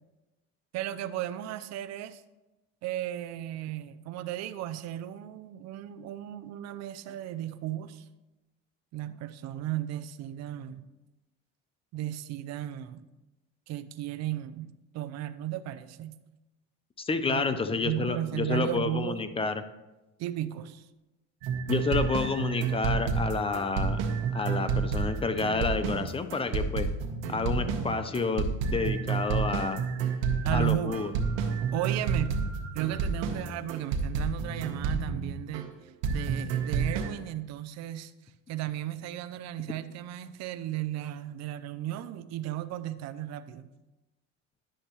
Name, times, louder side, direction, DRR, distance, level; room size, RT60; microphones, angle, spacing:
voice 1, 0.7-2.2 2.8-8.1 8.9-10.8 11.9-13.1 13.7-16.2 17.3-19.2 20.2-20.9 24.6-24.7 30.4-31.0 31.7-32.4 32.7-38.1 38.5-43.6, right 13 dB, 60° right, 12 dB, 0.6 m, -35 dB
voice 2, 17.0-19.6 21.7-24.0 24.3-26.9 27.3-29.8 30.5-31.1, left 4 dB, 20° left, 10 dB, 0.5 m, -29 dB
sound 1, 21.4-35.6 36.0-37.1, right 5 dB, 90° right, 1.1 m, -30 dB
9.9 x 6.3 x 3.0 m, 1.1 s
cardioid pair, 110°, 30 cm